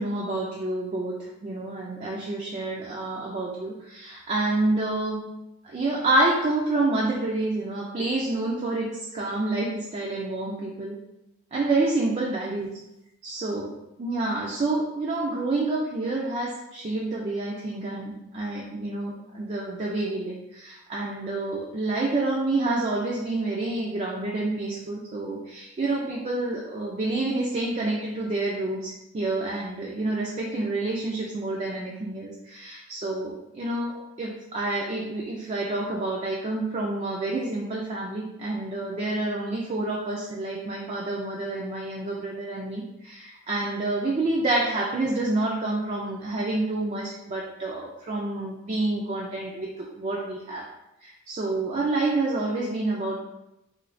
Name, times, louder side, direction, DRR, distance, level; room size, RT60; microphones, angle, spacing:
voice 1, 0.0-5.3 5.6-11.0 11.5-12.7 13.2-13.7 14.0-50.6 51.0-53.2, right 2 dB, 30° right, -3 dB, 0.3 m, -28 dB
3.1 x 2.7 x 2.5 m, 0.91 s
head